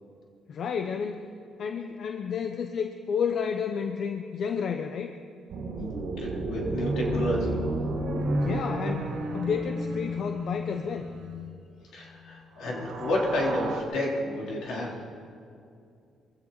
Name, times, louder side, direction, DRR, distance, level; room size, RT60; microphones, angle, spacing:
voice 1, 0.5-1.3 1.6-5.2 8.4-11.1, left 6 dB, 60° left, 6 dB, 0.8 m, -31 dB
sound 1, 5.5-11.5 12.6-13.8, right 1 dB, 75° right, 2.4 m, -31 dB
voice 2, 6.2-7.6 11.9-15.0, left 1 dB, 85° left, -3 dB, 3.6 m, -30 dB
22.5 x 15.5 x 4.1 m, 2.4 s
cardioid pair, 90°, 0 cm